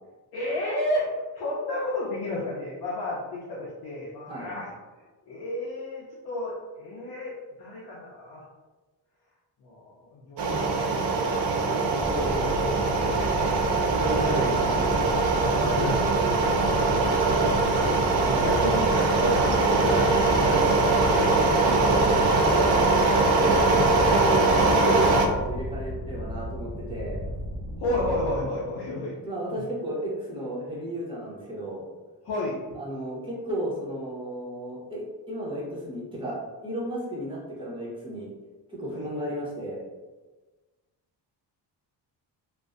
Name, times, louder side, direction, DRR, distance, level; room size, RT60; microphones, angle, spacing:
voice 1, 0.3-1.1 1.3-4.7 5.3-8.4 9.6-13.6 14.0-14.8 15.1-22.4 27.8-29.1 32.2-32.6, left 1 dB, 60° left, -6 dB, 0.6 m, -33 dB
sound 1, 10.4-25.3, right 3 dB, 60° right, 0.5 m, -22 dB
sound 2, 12.0-28.5, equal, 25° left, 1.2 m, -35 dB
voice 2, 12.0-12.8 13.9-14.8 23.2-27.2 29.2-31.9 32.7-38.3 38.7-39.8, right 1 dB, 10° right, -6 dB, 0.8 m, -33 dB
2.5 x 2.1 x 2.4 m, 1.2 s
cardioid pair, 105°, 43 cm